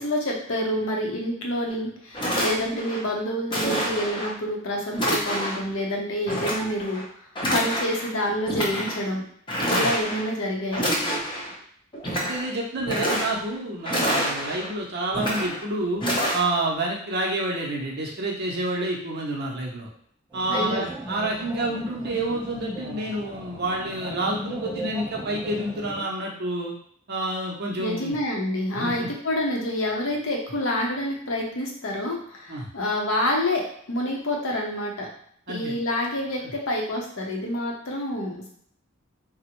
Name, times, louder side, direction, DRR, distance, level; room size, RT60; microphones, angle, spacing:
voice 1, 0.0-7.0 7.5-9.2 9.7-10.9 20.5-20.9 27.8-35.1 35.5-38.5, left 1 dB, 75° left, 0 dB, 0.8 m, -27 dB
sound 1, 1.7-1.8 2.1-3.0 3.5-4.3 4.9-5.7 6.3-7.0 7.3-8.1 8.4-9.0 9.5-10.3 10.7-11.5 11.9-12.5 12.8-13.5 13.8-14.7 15.1-15.6 16.0-16.4, equal, 25° left, 0.7 m, -27 dB
voice 2, 12.2-16.0 16.3-19.9 20.3-26.7 27.1-28.2 28.8-29.1 32.5-32.7 35.5-35.7, right 1 dB, 50° right, -2 dB, 0.6 m, -28 dB
sound 2, 20.3-26.0, equal, 10° right, 0.9 m, -36 dB
3.6 x 2.0 x 2.9 m, 0.64 s
head